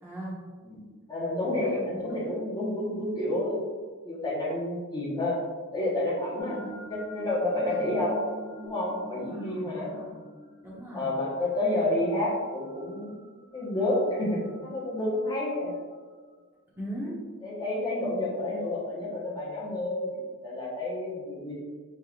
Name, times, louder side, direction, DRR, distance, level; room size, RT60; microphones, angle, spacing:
voice 1, 0.0-0.3 1.7-2.4 6.5-6.8 7.6-7.9 9.1-10.2 10.6-11.1 16.8-17.1, equal, 10° right, -7 dB, 1.1 m, -40 dB
voice 2, 0.6-3.6 4.0-5.4 5.7-6.6 6.9-8.3 8.6-9.9 10.9-13.2 13.5-15.7 17.4-21.5, left 1 dB, 20° left, -7 dB, 1.1 m, -30 dB
sound 1, 6.4-16.4, equal, 70° left, 1.2 m, -47 dB
4.4 x 3.5 x 2.4 m, 1.5 s
head